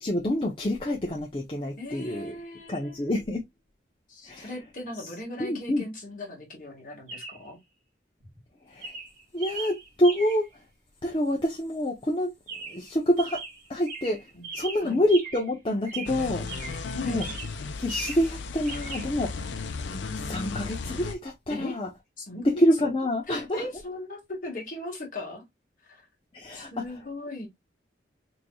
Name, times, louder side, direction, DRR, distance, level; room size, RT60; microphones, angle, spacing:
voice 1, 0.0-2.4 2.7-3.4 4.3-4.5 5.4-5.8 8.7-8.9 9.3-10.5 11.0-12.3 12.7-13.4 13.7-14.2 14.5-16.5 17.0-17.2 17.8-19.5 20.2-21.9 22.4-23.6 26.3-26.8, left 1 dB, 30° left, 0.6 m, -27 dB
voice 2, 1.8-3.0 4.1-7.6 14.3-14.5 14.8-15.0 16.9-17.3 19.8-20.8 21.5-21.8 22.2-22.9 23.3-25.4 25.9-26.0 26.5-27.5, left 1 dB, 45° left, 1.5 m, -39 dB
Chirp tweet, 4.3-4.5 7.1-7.5 8.2-8.5 8.8-10.5 12.5-12.9 13.2-15.6 15.8-16.9 17.2-18.3 18.6-19.1, right 3 dB, 40° right, 2.2 m, -39 dB
sound 1, 16.1-21.2, left 4 dB, 80° left, 0.5 m, -35 dB
4.0 x 3.2 x 2.2 m
head